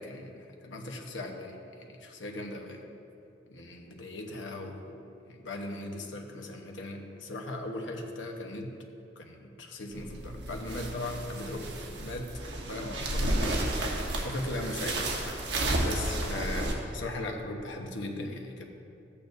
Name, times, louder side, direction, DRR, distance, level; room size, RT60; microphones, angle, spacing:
voice 1, 0.0-2.9 3.5-8.7 9.2-11.7 12.0-12.3 12.7-18.7, left 2 dB, 75° left, 2 dB, 1.1 m, -38 dB
sound 1, 9.9-16.7, right 1 dB, 60° right, 1.3 m, -32 dB
13.5 x 8.5 x 2.7 m, 2.7 s
head